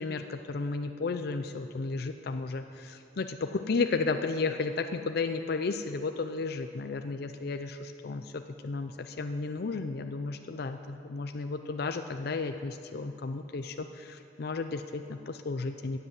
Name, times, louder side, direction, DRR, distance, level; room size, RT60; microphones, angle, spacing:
voice 1, 0.0-16.0, left 4 dB, 60° left, 7 dB, 0.5 m, -33 dB
15.5 x 8.0 x 7.5 m, 2.6 s
head